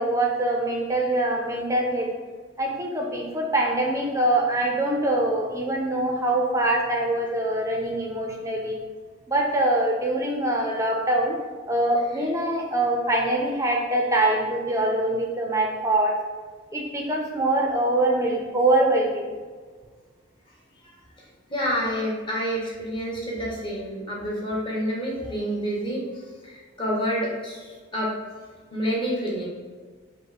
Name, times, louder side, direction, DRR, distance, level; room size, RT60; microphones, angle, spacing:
voice 1, 0.0-2.1 2.6-8.8 9.3-11.4 11.7-16.1 16.7-19.3, right 1 dB, 15° right, 0 dB, 0.5 m, -24 dB
voice 2, 20.8-28.1 28.7-29.5, equal, 25° left, -4 dB, 1.0 m, -29 dB
5.2 x 2.1 x 4.1 m, 1.5 s
head